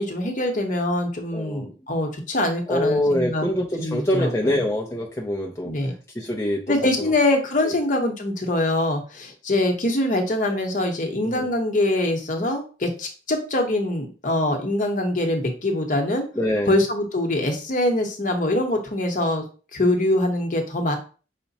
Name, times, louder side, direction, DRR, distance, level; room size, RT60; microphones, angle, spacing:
voice 1, 0.0-3.5 3.8-4.6 5.6-5.9 6.7-16.3 16.7-19.4 19.7-21.0, left 1 dB, 45° left, 0.9 m, -23 dB
voice 2, 1.3-1.7 2.7-5.7 6.2-6.6 7.0-7.1 11.2-11.5 16.4-16.7, left 1 dB, 15° left, 0.5 m, -24 dB
5.7 x 2.1 x 4.0 m
head